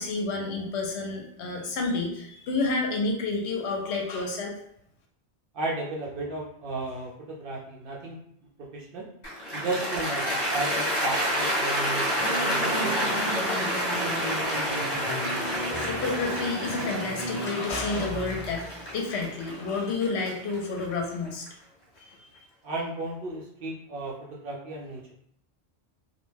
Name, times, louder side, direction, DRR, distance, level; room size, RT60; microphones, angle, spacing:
voice 1, 0.0-4.5 15.5-21.4 22.0-22.3, left 3 dB, 75° left, 1 dB, 0.9 m, -30 dB
voice 2, 5.5-8.2 8.6-9.1 9.5-14.2 22.6-25.1, right 2 dB, 60° right, -3 dB, 0.6 m, -34 dB
Cheering / Applause, 9.2-21.5, equal, 45° left, 0.8 m, -29 dB
sound 1, 12.2-18.8, right 1 dB, 25° right, 0.7 m, -35 dB
2.3 x 2.1 x 3.1 m, 0.71 s
omnidirectional pair, 1.2 m